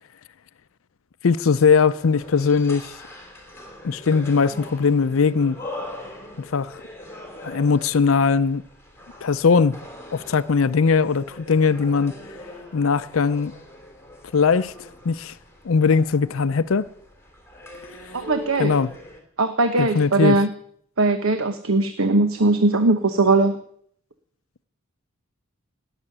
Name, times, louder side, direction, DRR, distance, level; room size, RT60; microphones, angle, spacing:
voice 1, 1.2-3.0 3.8-5.6 6.4-6.8 7.4-8.6 9.2-9.8 10.1-12.1 12.7-13.5 14.3-14.7 15.0-15.3 15.6-16.9 17.9-18.0 18.6-18.9 19.8-20.4, left 5 dB, 70° left, 0.5 m, -20 dB
sound 1, 2.0-19.2, left 1 dB, 10° left, 3.1 m, -42 dB
voice 2, 18.1-18.8 19.4-20.5 21.0-23.6, right 2 dB, 75° right, 1.1 m, -20 dB
18.0 x 7.1 x 10.0 m
head